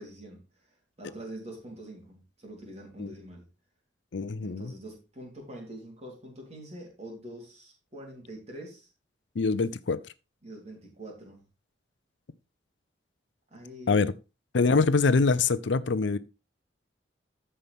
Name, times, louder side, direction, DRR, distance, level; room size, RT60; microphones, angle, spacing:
voice 1, 0.0-3.5 4.4-8.9 10.4-11.4 13.5-14.0, right 1 dB, 35° right, 3.7 m, -45 dB
voice 2, 4.1-4.7 9.4-10.0 13.9-14.1 14.5-16.2, left 4 dB, 65° left, 0.5 m, -24 dB
14.0 x 5.6 x 3.5 m
head